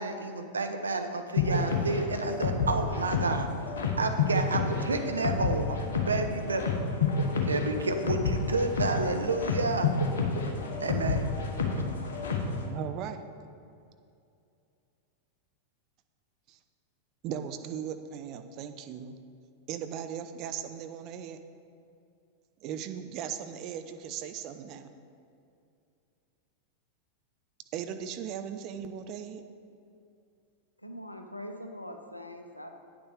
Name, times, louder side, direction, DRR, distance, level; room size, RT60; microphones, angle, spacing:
voice 1, 0.0-3.5 4.0-6.6 7.4-9.9 10.8-11.3, right 3 dB, 75° right, 6 dB, 0.7 m, -30 dB
sound 1, 1.4-12.6, left 4 dB, 65° left, 1.1 m, -29 dB
voice 2, 12.6-13.2 16.5-16.6 17.2-19.2 19.7-21.4 22.6-24.9 27.7-29.4, right 8 dB, 40° right, 8 dB, 0.6 m, -38 dB
voice 3, 30.8-32.7, left 1 dB, 85° left, 5 dB, 0.7 m, -42 dB
8.9 x 7.0 x 4.9 m, 2.5 s
figure-of-eight pair, 90°, 0 cm